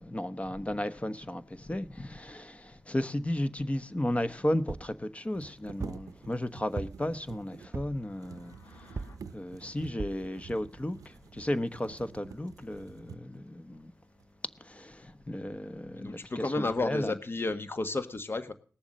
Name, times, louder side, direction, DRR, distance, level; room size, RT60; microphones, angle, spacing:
voice 1, 0.0-9.0 9.3-13.9 14.6-17.1, left 1 dB, 20° left, 1.1 m, -34 dB
sound 1, 3.7-3.8 4.0-4.1 5.1-13.5 14.2-14.3 14.8-15.4 15.7-16.3, right 7 dB, 85° right, 0.6 m, -50 dB
sound 2, 4.7-5.0 5.8-6.1 6.8-7.2 7.7-8.1 9.0-9.3 10.0-10.3 10.9-11.0 11.2-11.3, right 4 dB, 45° right, 0.5 m, -38 dB
sound 3, 7.8-9.2, left 4 dB, 90° left, 1.7 m, -58 dB
voice 2, 16.0-18.5, left 2 dB, 40° left, 1.5 m, -32 dB
19.0 x 7.1 x 6.4 m
cardioid pair, 45°, 6 cm